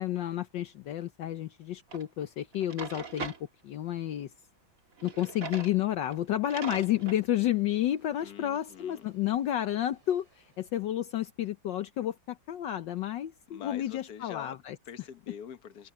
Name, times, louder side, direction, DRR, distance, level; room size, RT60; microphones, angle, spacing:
voice 1, 0.0-3.3 3.6-4.3 5.0-14.8, left 12 dB, 70° left, 1.5 m, -31 dB
Drawer open or close, 1.9-2.0 2.5-3.4 5.0-5.8 6.1-6.2 6.5-7.2, right 5 dB, 45° right, 2.3 m, -40 dB
Engine / Drill, 6.7-12.5, right 3 dB, 90° right, 9.0 m, -69 dB
voice 2, 8.2-9.1 13.5-14.6 14.9-15.9, left 9 dB, 55° left, 1.7 m, -45 dB
omnidirectional pair, 2.1 m